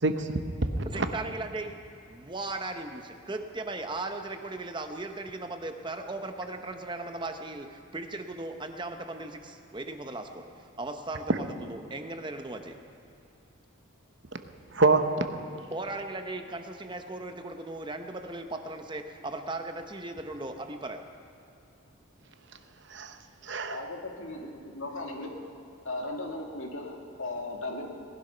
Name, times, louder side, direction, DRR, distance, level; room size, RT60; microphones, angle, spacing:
voice 1, 0.0-1.1 11.3-11.4 14.7-15.3 22.9-23.2 23.4-23.8, right 3 dB, 60° right, 7 dB, 0.9 m, -26 dB
voice 2, 0.9-1.8 2.1-12.8 15.7-21.0, right 2 dB, 20° right, 6 dB, 0.8 m, -37 dB
voice 3, 23.7-25.3 25.8-27.9, left 2 dB, 75° left, 1 dB, 2.1 m, -37 dB
18.5 x 12.0 x 5.6 m, 2.8 s
head